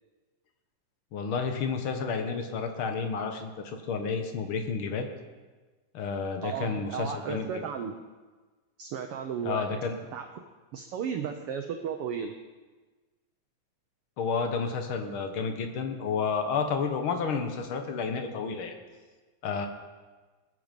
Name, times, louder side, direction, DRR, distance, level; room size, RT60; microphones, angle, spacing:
voice 1, 1.1-5.1 5.9-7.7 9.4-10.0 14.2-18.8 19.4-19.7, left 5 dB, 60° left, 6 dB, 1.5 m, -31 dB
voice 2, 6.4-8.0 8.8-9.6 10.1-10.3 10.7-12.4, right 7 dB, 85° right, 6 dB, 1.2 m, -34 dB
20.5 x 7.8 x 5.2 m, 1.3 s
omnidirectional pair, 3.5 m